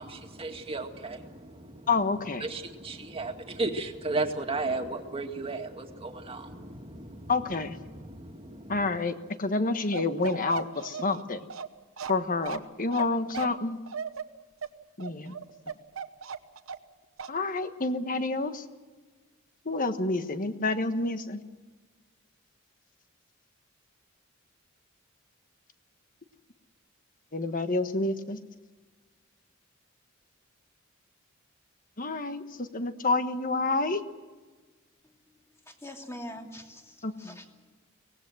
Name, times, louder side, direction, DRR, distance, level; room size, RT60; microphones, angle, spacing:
voice 1, 0.0-1.9 2.4-8.9, right 3 dB, 30° right, 3 dB, 2.1 m, -35 dB
voice 2, 1.9-2.4 7.3-7.8 8.7-11.4 12.1-13.8 15.0-15.3 17.3-18.6 19.6-21.4 27.3-28.4 32.0-34.0 37.0-37.4, left 3 dB, 40° left, 9 dB, 1.4 m, -28 dB
Bark, 9.9-16.9 17.2-17.4, right 6 dB, 80° right, 1.1 m, -38 dB
voice 3, 35.6-37.7, left 1 dB, 15° left, 2 dB, 2.6 m, -44 dB
24.0 x 18.5 x 7.8 m, 1.4 s
head